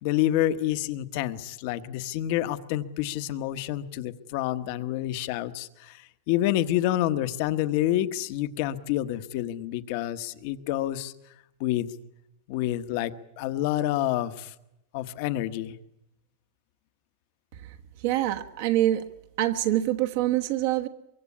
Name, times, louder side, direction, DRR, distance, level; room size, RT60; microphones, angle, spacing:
voice 1, 0.0-11.1 11.6-11.9 12.5-14.5 14.9-15.7, left 13 dB, 45° left, 1.1 m, -28 dB
voice 2, 18.0-19.0 19.4-20.9, right 13 dB, 50° right, 1.2 m, -25 dB
23.5 x 23.5 x 8.6 m
supercardioid pair, 170°, 0 cm